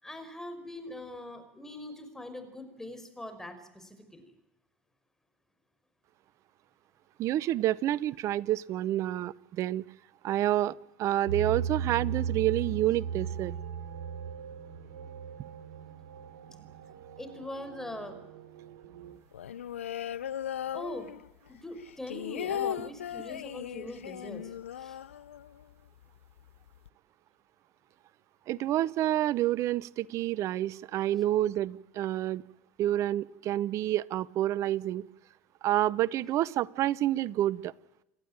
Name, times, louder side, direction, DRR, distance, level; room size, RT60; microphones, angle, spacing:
voice 1, 0.0-4.3 17.2-18.2 20.7-21.1 21.5-25.0, left 1 dB, 5° left, 7 dB, 5.7 m, -42 dB
voice 2, 7.2-9.8 10.2-13.5 28.5-32.4 32.8-35.0 35.6-37.7, right 13 dB, 50° right, 21 dB, 0.8 m, -28 dB
sound 1, 11.3-19.2, right 7 dB, 80° right, 3.2 m, -37 dB
sound 2, 19.3-21.5 21.8-25.7 26.0-26.1 26.4-26.9, left 10 dB, 85° left, 0.7 m, -37 dB
29.0 x 12.5 x 9.0 m, 0.89 s
hypercardioid pair, 80°, 7 cm